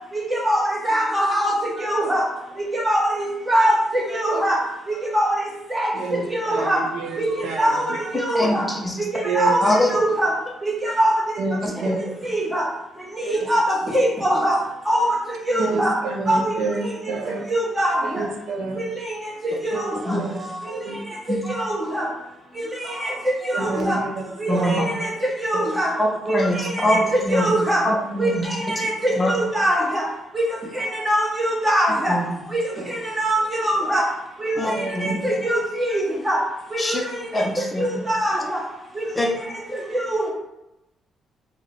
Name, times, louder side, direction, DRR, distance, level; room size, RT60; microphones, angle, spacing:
voice 1, 0.1-2.2 2.6-4.6 4.9-5.3 5.7-6.8 7.2-8.6 9.0-10.3 10.6-11.4 12.2-12.6 13.2-14.6 14.9-15.1 15.5-15.9 16.3-16.5 16.8-16.9 17.5-18.2 18.8-19.2 19.4-20.2 21.3-22.1 22.6-24.0 24.4-25.9 26.3-27.8 28.2-30.0 30.3-30.5 30.7-32.1 32.5-34.1 34.4-36.4 36.7-37.0 37.3-37.4 37.8-38.6 39.0-39.3 39.7-40.3, right 1 dB, 5° right, -3 dB, 0.8 m, -23 dB
voice 2, 5.9-8.0 8.4-8.6 9.2-9.6 11.4-12.0 13.2-13.3 15.5-17.4 18.0-18.8 19.7-21.0 23.5-24.8 25.5-25.8 32.7-32.9 34.7-35.2, right 3 dB, 80° right, 3 dB, 0.5 m, -29 dB
voice 3, 8.1-9.0 9.6-9.9 11.6-12.0 20.1-20.3 21.3-21.4 24.5-24.9 26.0-27.6 27.8-28.5 28.8-29.3 32.1-32.3 34.6-35.1 36.8-37.0 37.3-38.0 39.1-39.3, left 1 dB, 15° left, -1 dB, 0.4 m, -23 dB
4.7 x 2.0 x 3.0 m, 0.89 s
cardioid pair, 165°, 0 cm